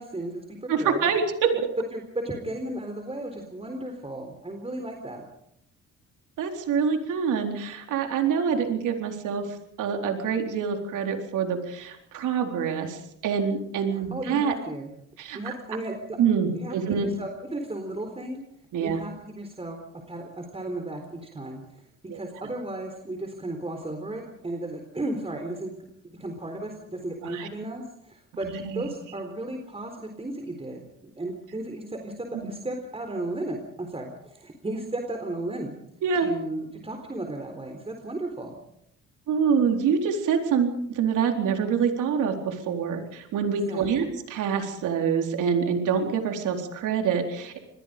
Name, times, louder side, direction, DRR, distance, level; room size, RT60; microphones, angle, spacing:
voice 1, 0.0-1.1 1.9-5.2 13.9-14.9 15.3-16.0 16.5-18.4 18.8-19.8 20.1-21.6 22.1-25.7 26.0-32.1 32.4-35.8 36.2-38.5 43.7-43.9, right 1 dB, 20° right, 4 dB, 4.0 m, -34 dB
voice 2, 0.7-1.7 6.4-9.5 9.8-14.6 15.2-15.5 16.2-17.1 18.7-19.0 22.1-22.2 27.2-27.5 28.5-28.8 32.4-32.5 36.0-36.3 39.3-47.6, right 6 dB, 80° right, 4 dB, 4.1 m, -26 dB
27.0 x 21.5 x 5.2 m, 0.75 s
cardioid pair, 90°, 30 cm